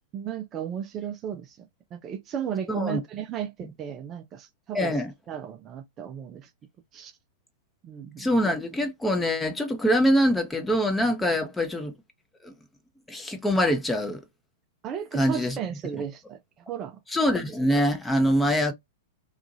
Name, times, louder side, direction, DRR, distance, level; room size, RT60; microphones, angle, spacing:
voice 1, 0.1-4.9 5.3-6.5 6.9-7.1 7.8-8.3 14.8-16.4 16.7-17.0, right 8 dB, 30° right, 0.5 m, -34 dB
voice 2, 2.7-3.0 4.7-5.1 8.2-11.9 12.4-12.5 13.1-14.2 15.1-15.6 17.1-18.7, equal, 10° left, 0.8 m, -24 dB
2.8 x 2.4 x 2.6 m
figure-of-eight pair, 100°, 0 cm